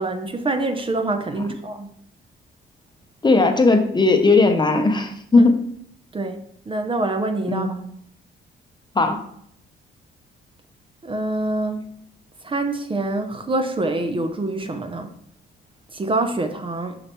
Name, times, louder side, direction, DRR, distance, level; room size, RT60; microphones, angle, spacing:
voice 1, 0.0-1.9 5.4-5.5 6.1-6.4 6.7-7.7 11.0-11.8 12.4-15.1 15.9-17.0, right 2 dB, 25° right, 6 dB, 0.7 m, -25 dB
voice 2, 3.2-5.5 7.5-7.7 8.9-9.2, left 3 dB, 20° left, 5 dB, 0.8 m, -17 dB
6.5 x 5.6 x 3.1 m, 0.69 s
cardioid pair, 90°, 20 cm